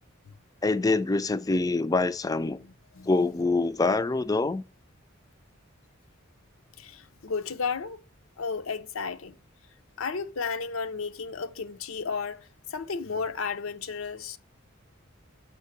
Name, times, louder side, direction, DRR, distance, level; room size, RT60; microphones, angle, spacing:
voice 1, 0.6-2.6 3.1-4.6, left 3 dB, 20° left, 0.4 m, -25 dB
voice 2, 2.5-3.4 6.8-8.0 8.4-9.4 10.0-14.4, left 5 dB, 80° left, 0.6 m, -33 dB
6.5 x 4.5 x 6.6 m
head